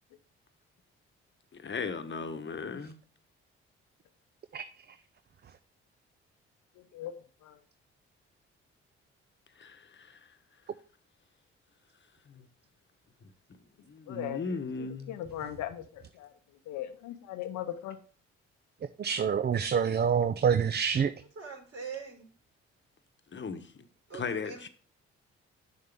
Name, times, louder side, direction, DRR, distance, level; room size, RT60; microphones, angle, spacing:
voice 1, 1.5-3.0 9.6-10.3 12.3-12.5 13.8-15.2 23.3-23.8 24.1-24.7, left 4 dB, 40° left, 10 dB, 1.1 m, -37 dB
voice 2, 14.1-14.4 15.1-15.8 16.2-16.3 16.7-18.0, left 12 dB, 75° left, 9 dB, 0.7 m, -37 dB
voice 3, 19.0-21.1, right 7 dB, 35° right, 12 dB, 0.5 m, -26 dB
voice 4, 21.2-22.3 24.1-24.7, right 5 dB, 55° right, 1 dB, 4.1 m, -43 dB
7.1 x 6.8 x 3.5 m, 0.41 s
hypercardioid pair, 50°, 30 cm